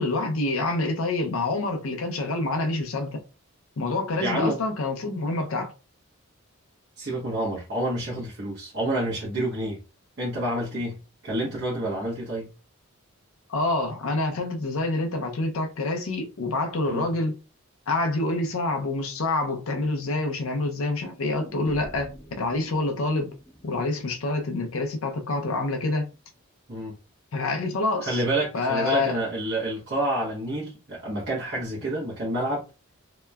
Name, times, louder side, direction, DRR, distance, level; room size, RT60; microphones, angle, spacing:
voice 1, 0.0-3.2 3.8-5.7 13.5-17.4 17.9-23.3 23.6-26.0 27.3-28.2 28.5-29.2, left 2 dB, 70° left, 0.6 m, -27 dB
voice 2, 4.2-4.6 7.0-9.8 10.2-12.5 16.9-17.1 26.7-26.9 28.0-32.6, right 1 dB, 50° right, 0.8 m, -28 dB
sound 1, 21.3-25.3 25.6-25.7, right 1 dB, 5° right, 0.6 m, -46 dB
2.8 x 2.2 x 2.2 m
head